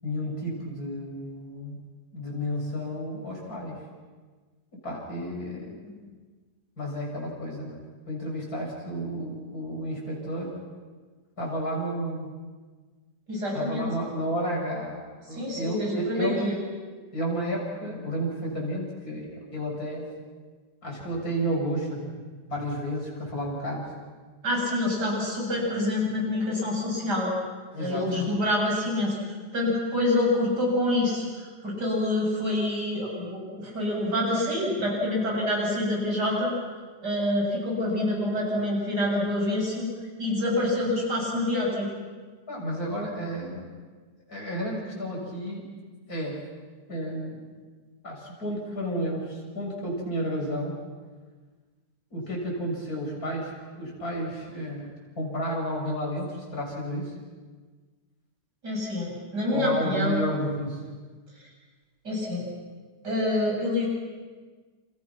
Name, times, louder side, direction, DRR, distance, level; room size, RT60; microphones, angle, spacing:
voice 1, 0.0-1.8 2.1-3.8 4.8-5.8 6.8-7.8 8.1-10.6 11.4-12.3 13.5-16.5 17.1-20.1 20.8-22.1 22.5-23.9 27.7-28.3 42.5-43.7 44.3-45.7 46.1-46.4 46.9-47.4 48.0-50.7 52.1-54.9 55.2-57.1 59.5-60.8, equal, 60° left, -2 dB, 7.8 m, -32 dB
voice 2, 13.3-13.9 15.3-16.5 24.4-27.3 27.8-29.2 29.5-31.2 31.6-36.5 37.0-39.9 40.2-41.9 58.6-60.2 62.1-62.5 63.0-63.9, left 1 dB, 80° right, -2 dB, 8.7 m, -26 dB
29.5 x 29.0 x 6.1 m, 1.4 s
omnidirectional pair, 1.8 m